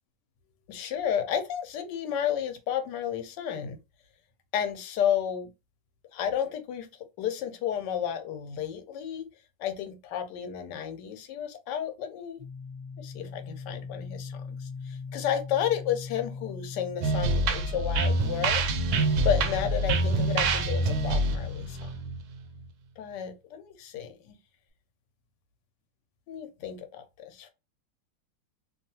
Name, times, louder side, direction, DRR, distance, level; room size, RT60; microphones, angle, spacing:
voice 1, 0.7-3.8 4.5-5.5 6.1-6.9 7.2-9.3 9.6-12.4 13.0-18.6 19.2-21.9 23.0-24.4 26.3-27.5, left 9 dB, 80° left, 1.2 m, -32 dB
sound 1, 12.4-22.2, left 5 dB, 30° left, 1.1 m, -41 dB
sound 2, 17.0-22.6, right 2 dB, 70° right, 0.8 m, -26 dB
2.9 x 2.3 x 2.8 m
omnidirectional pair, 1.9 m